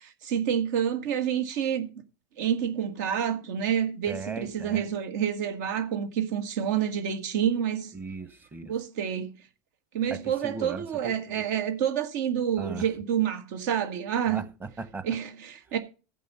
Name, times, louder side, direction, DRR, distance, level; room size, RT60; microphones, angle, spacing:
voice 1, 0.0-1.9 2.4-7.9 8.6-9.3 9.9-14.5 15.0-15.8, right 9 dB, 75° right, 1.9 m, -28 dB
voice 2, 4.1-4.9 7.9-8.7 10.1-11.4 12.6-12.9 14.3-15.1, right 4 dB, 20° right, 1.1 m, -38 dB
15.0 x 5.6 x 5.5 m
supercardioid pair, 120°, 9 cm